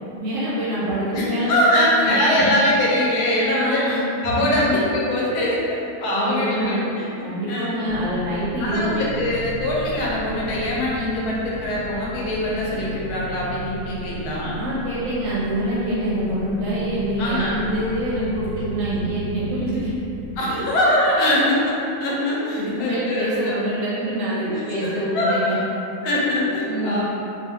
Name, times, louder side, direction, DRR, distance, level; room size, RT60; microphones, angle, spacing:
voice 1, 0.2-2.5 3.6-4.7 6.1-6.8 7.2-8.9 14.5-19.9 20.5-20.6 22.5-25.6 26.7-27.0, equal, 70° right, -8 dB, 0.8 m, -25 dB
voice 2, 1.1-7.8 8.6-14.6 17.2-17.6 20.4-23.6 24.4-25.6 26.0-27.0, left 1 dB, 75° left, -5 dB, 1.1 m, -23 dB
sound 1, 7.9-20.4, right 1 dB, 55° left, 0.5 m, -35 dB
2.5 x 2.4 x 2.7 m, 2.8 s
omnidirectional pair, 1.7 m